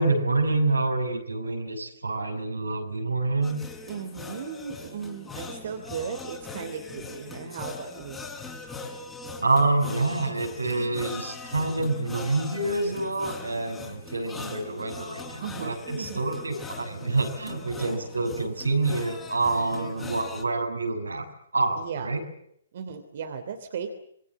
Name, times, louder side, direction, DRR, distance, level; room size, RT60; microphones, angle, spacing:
voice 1, 0.0-3.6 9.4-21.3 21.5-22.2, right 2 dB, 80° right, 5 dB, 6.1 m, -27 dB
sound 1, 3.4-20.4, left 4 dB, 10° left, 5.4 m, -41 dB
voice 2, 3.9-8.2 15.4-16.2 17.7-18.0 18.4-18.5 19.7-20.1 21.8-22.1 22.7-23.9, right 6 dB, 50° right, 6 dB, 3.1 m, -36 dB
27.5 x 22.0 x 7.4 m, 0.71 s
figure-of-eight pair, 125°, 0 cm